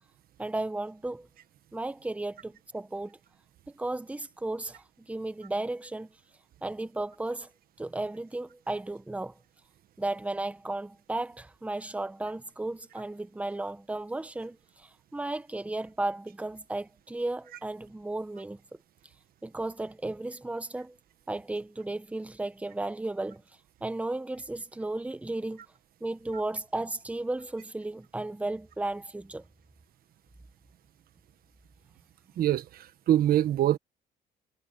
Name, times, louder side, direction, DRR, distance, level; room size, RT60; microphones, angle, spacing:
voice 1, 0.4-1.3 1.7-3.2 3.7-6.1 6.6-7.5 7.8-9.4 10.0-18.6 19.4-21.0 21.3-23.4 23.8-25.6 26.0-29.4, right 2 dB, 10° right, 1.2 m, -34 dB
voice 2, 32.4-33.8, right 12 dB, 60° right, 1.4 m, -24 dB
cardioid pair, 110°, 17 cm